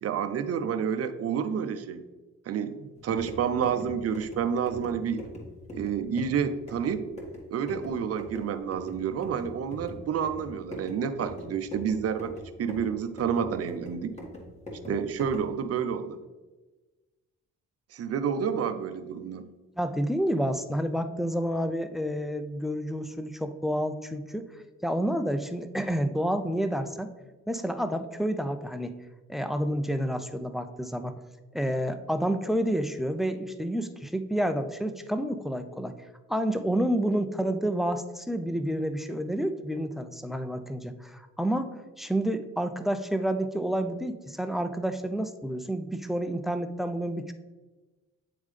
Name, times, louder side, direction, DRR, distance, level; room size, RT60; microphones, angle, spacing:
voice 1, 0.0-2.0 2.5-5.2 5.7-7.0 7.5-12.3 12.6-14.1 14.9-16.2 17.9-19.4, right 7 dB, 55° right, 10 dB, 0.6 m, -29 dB
sound 1, 3.0-15.6, left 1 dB, 20° left, 1.6 m, -43 dB
voice 2, 19.8-24.5 24.8-27.1 27.5-28.9 29.3-31.1 31.5-35.9 36.3-47.3, equal, ahead, 9 dB, 0.4 m, -29 dB
9.1 x 3.6 x 3.2 m, 1.2 s
cardioid pair, 90°, 30 cm